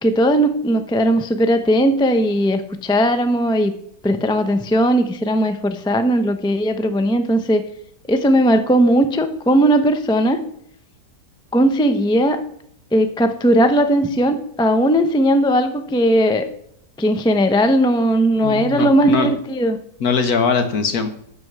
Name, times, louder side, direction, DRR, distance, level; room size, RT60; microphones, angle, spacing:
voice 1, 0.0-3.7 4.0-7.6 8.1-10.4 11.5-12.4 12.9-16.5 17.0-19.8, equal, 5° left, 8 dB, 0.3 m, -17 dB
voice 2, 18.4-19.3 20.0-21.1, left 5 dB, 65° left, 8 dB, 1.7 m, -20 dB
9.6 x 6.9 x 6.1 m, 0.69 s
omnidirectional pair, 1.8 m